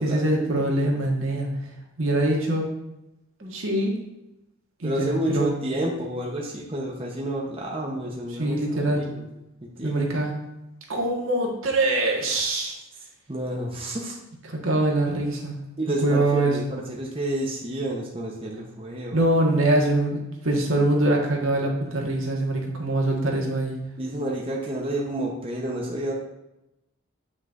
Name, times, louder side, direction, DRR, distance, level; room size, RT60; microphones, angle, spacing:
voice 1, 0.0-1.5 2.0-2.6 3.5-3.9 4.8-5.5 8.3-9.0 9.8-10.3 10.9-12.7 14.5-15.5 15.9-16.6 19.1-23.8, right 1 dB, 75° right, -1 dB, 1.5 m, -23 dB
voice 2, 4.8-8.6 8.9-9.2 9.6-10.1 13.3-14.2 15.8-19.2 24.0-26.1, right 1 dB, 25° right, -2 dB, 0.8 m, -30 dB
7.7 x 6.2 x 2.6 m, 0.90 s
head